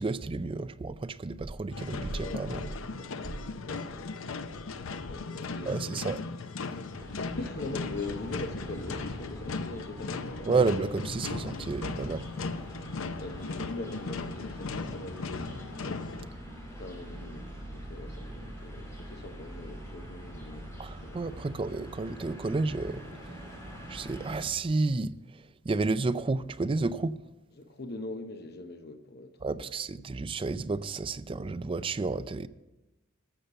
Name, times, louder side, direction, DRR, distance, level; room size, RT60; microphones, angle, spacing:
voice 1, 0.0-2.6 5.7-6.2 10.5-12.3 20.8-23.0 23.9-25.1 25.6-27.2 29.4-32.5, right 3 dB, 25° right, 0.4 m, -31 dB
sound 1, 1.7-16.3, left 4 dB, 85° left, 0.6 m, -37 dB
voice 2, 2.1-2.7 3.0-3.4 3.7-4.1 5.1-5.9 7.4-10.6 13.2-15.7 16.8-20.7 21.0-21.4 27.5-29.7, left 2 dB, 55° left, 0.9 m, -42 dB
sound 2, 6.9-24.5, equal, 15° left, 3.4 m, -44 dB
13.5 x 6.6 x 6.7 m
head